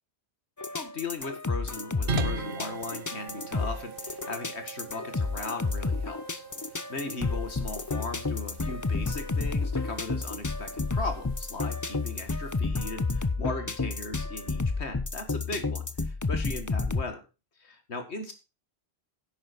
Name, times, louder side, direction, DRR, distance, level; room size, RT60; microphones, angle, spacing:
sound 1, 0.6-17.0, left 3 dB, 20° left, 0.6 m, -31 dB
voice 1, 0.7-6.4 6.7-17.2 17.6-18.3, left 3 dB, 85° left, 7 dB, 2.2 m, -38 dB
sound 2, 2.1-12.6, right 5 dB, 60° right, 1.0 m, -41 dB
11.0 x 8.8 x 4.5 m, 0.29 s
omnidirectional pair, 1.1 m